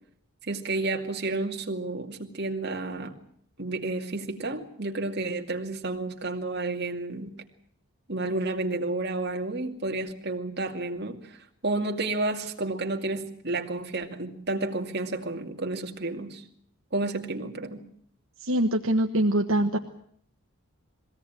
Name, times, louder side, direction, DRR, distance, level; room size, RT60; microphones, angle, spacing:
voice 1, 0.4-3.1 3.6-7.3 8.1-16.4 16.9-17.8, right 2 dB, 50° right, 3 dB, 2.4 m, -31 dB
voice 2, 18.4-19.8, right 1 dB, 65° right, 3 dB, 1.3 m, -23 dB
22.0 x 17.5 x 9.0 m, 0.66 s
head